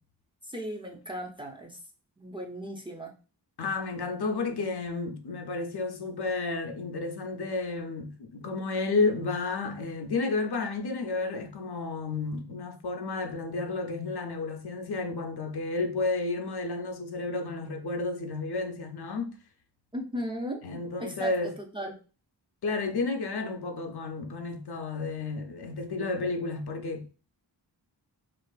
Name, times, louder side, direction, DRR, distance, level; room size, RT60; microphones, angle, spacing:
voice 1, 0.4-1.8 2.2-3.1 19.9-21.3 21.7-22.0, equal, 10° right, 0.5 m, -37 dB
voice 2, 3.6-19.3 20.6-21.5 22.6-27.1, left 3 dB, 60° left, 0.5 m, -31 dB
2.5 x 2.4 x 2.2 m
cardioid pair, 40°, 44 cm